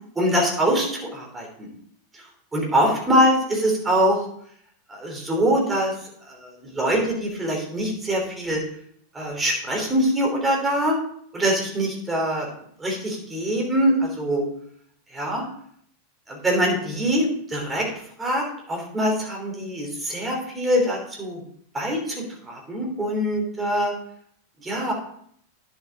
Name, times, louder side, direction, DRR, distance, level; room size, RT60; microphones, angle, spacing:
voice 1, 0.1-1.7 2.5-4.3 4.9-5.9 6.3-8.6 9.1-10.9 11.3-12.5 12.8-14.4 15.1-15.4 16.3-17.9 18.2-21.4 21.7-22.1 22.5-23.9 24.6-24.9, equal, 15° right, -1 dB, 3.3 m, -23 dB
10.5 x 7.0 x 3.7 m, 0.64 s
figure-of-eight pair, 90°, 0 cm